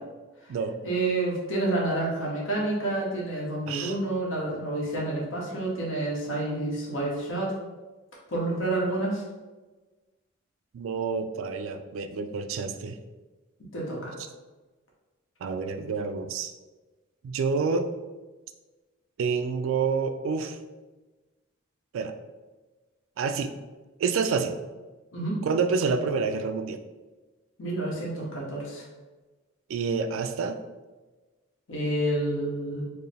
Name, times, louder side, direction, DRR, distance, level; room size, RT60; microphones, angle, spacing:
voice 1, 0.8-7.5 8.3-9.2 13.7-14.1 25.1-25.4 27.6-28.8 31.7-32.8, right 2 dB, 70° left, -4 dB, 0.9 m, -29 dB
voice 2, 10.7-13.0 15.4-16.5 17.2-17.9 19.2-20.6 21.9-22.1 23.2-23.5 24.0-24.6 25.5-26.8 29.7-30.6, right 5 dB, 75° right, 8 dB, 0.3 m, -28 dB
4.5 x 2.0 x 3.3 m, 1.2 s
head